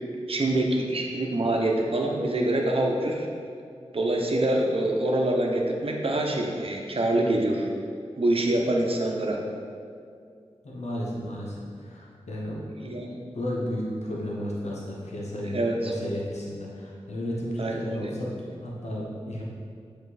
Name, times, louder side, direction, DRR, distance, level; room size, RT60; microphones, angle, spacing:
voice 1, 0.3-3.3 3.9-7.7 8.2-9.4 12.8-13.2 15.4-15.9 17.6-18.1, right 1 dB, 55° right, 0 dB, 0.9 m, -25 dB
voice 2, 10.6-19.4, equal, 90° left, -4 dB, 1.1 m, -33 dB
7.3 x 4.4 x 4.2 m, 2.3 s
wide cardioid pair, 60°, 11 cm